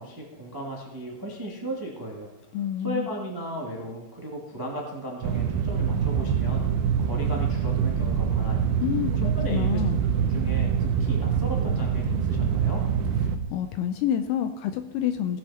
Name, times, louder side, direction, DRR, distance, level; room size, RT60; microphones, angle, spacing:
voice 1, 0.0-2.3 2.8-6.7 7.0-8.7 9.3-9.8 10.2-12.8, right 1 dB, 30° right, -1 dB, 0.3 m, -35 dB
voice 2, 2.5-3.1 8.8-10.0 13.5-15.4, left 10 dB, 80° left, 9 dB, 2.4 m, -28 dB
sound 1, 5.2-13.4, right 7 dB, 75° right, 2.4 m, -25 dB
18.5 x 8.0 x 4.3 m, 1.1 s
omnidirectional pair, 5.1 m